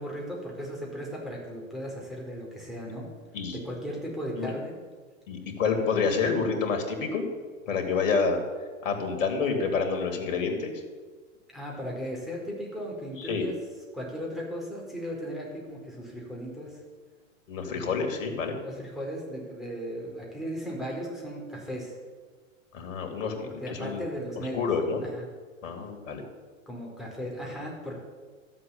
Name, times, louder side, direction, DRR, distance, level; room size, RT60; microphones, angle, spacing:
voice 1, 0.0-3.1 3.5-4.7 11.5-13.5 13.9-16.8 18.6-22.0 23.4-24.6 25.1-25.2 26.7-28.0, equal, ahead, -3 dB, 4.8 m, -36 dB
voice 2, 5.3-7.3 7.7-8.4 8.8-10.7 13.2-13.4 17.5-18.6 22.7-24.0 24.5-25.0 25.6-26.2, left 5 dB, 70° left, 4 dB, 2.9 m, -28 dB
13.5 x 7.5 x 8.8 m, 1.4 s
hypercardioid pair, 110°, 39 cm